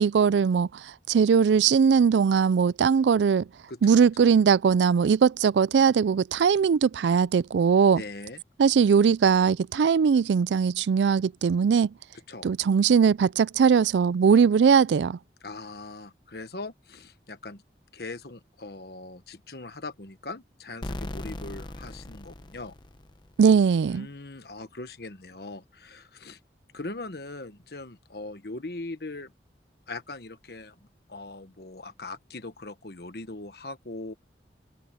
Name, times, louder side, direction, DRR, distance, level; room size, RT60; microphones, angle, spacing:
voice 1, 0.0-3.5 3.8-8.0 8.6-11.9 12.4-15.2 23.4-24.1, right 6 dB, 85° right, 0.4 m, -20 dB
voice 2, 7.9-8.4 12.3-12.5 15.4-17.6 17.9-22.8 23.9-26.4 26.7-29.3 29.9-34.1, left 2 dB, 60° left, 1.4 m, -40 dB
sound 1, 20.8-23.5, left 1 dB, 25° left, 0.8 m, -38 dB
open air
head